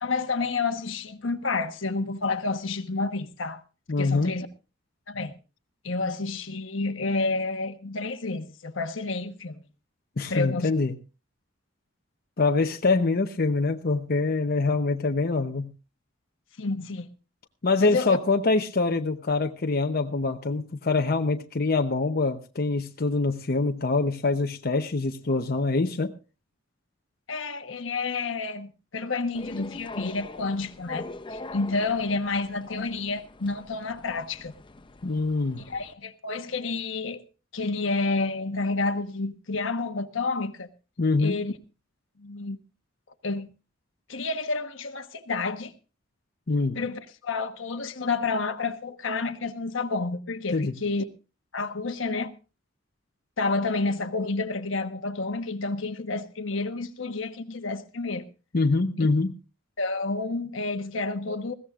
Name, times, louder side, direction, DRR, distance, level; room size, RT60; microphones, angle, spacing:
voice 1, 0.0-3.6 4.0-4.5 5.1-5.3 5.8-9.6 10.3-10.7 16.6-17.1 17.8-18.2 27.3-34.5 35.7-37.2 37.5-40.7 41.2-41.5 42.2-42.6 43.2-43.5 44.1-45.7 46.7-51.0 51.5-52.3 53.4-58.2 59.8-61.5, left 3 dB, 75° left, 1.2 m, -29 dB
voice 2, 3.9-4.3 10.2-10.9 12.4-15.7 17.6-26.1 35.0-35.6 41.0-41.4 46.5-46.8 50.5-50.7 58.5-59.3, left 3 dB, 50° left, 0.8 m, -24 dB
sound 1, 29.3-35.9, left 2 dB, 25° left, 0.6 m, -43 dB
20.5 x 16.0 x 2.4 m
head